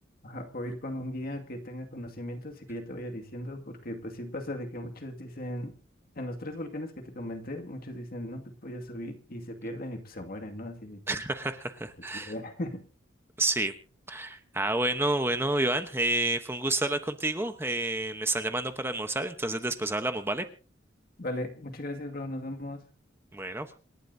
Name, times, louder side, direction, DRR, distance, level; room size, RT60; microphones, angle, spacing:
voice 1, 0.2-5.7 6.2-11.2 12.1-12.8 21.2-22.9, left 1 dB, 50° left, 3 dB, 2.2 m, -37 dB
voice 2, 11.1-12.3 13.4-13.7 14.1-20.4 23.3-23.7, right 2 dB, 10° right, 8 dB, 1.0 m, -29 dB
27.5 x 11.5 x 2.8 m, 0.36 s
head